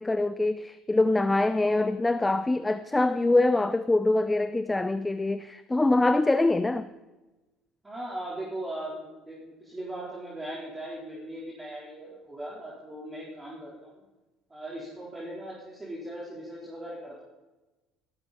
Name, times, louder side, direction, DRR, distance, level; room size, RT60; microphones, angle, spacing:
voice 1, 0.0-6.9, left 2 dB, 15° left, 13 dB, 0.5 m, -24 dB
voice 2, 7.8-14.0 14.5-17.2, right 1 dB, 20° right, -5 dB, 4.0 m, -39 dB
15.5 x 12.5 x 4.3 m, 1.1 s
hypercardioid pair, 75°, 0 cm